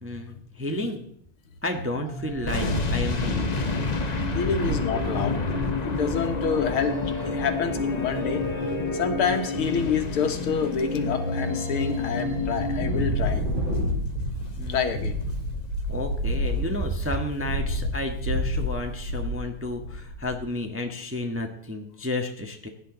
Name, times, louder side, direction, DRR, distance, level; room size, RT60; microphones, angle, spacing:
voice 1, 0.0-1.1 1.6-3.5 14.6-14.8 15.9-22.7, left 1 dB, 10° right, 3 dB, 1.0 m, -31 dB
sound 1, 2.1-13.4, left 3 dB, 30° left, 2.2 m, -32 dB
Wind, 2.3-5.3 5.8-5.9 6.1-6.5 7.9-8.5 9.0-9.5 9.9-11.0 11.5-12.0 12.3-20.5, equal, 60° right, 4.6 m, -30 dB
sound 2, 2.5-15.6 15.9-16.1, left 3 dB, 55° left, 0.4 m, -33 dB
voice 2, 4.3-5.4 5.9-6.9 7.2-8.4 8.9-13.4 14.7-15.2, left 6 dB, 75° left, 6 dB, 2.2 m, -27 dB
16.5 x 10.5 x 3.9 m, 0.64 s
omnidirectional pair, 2.4 m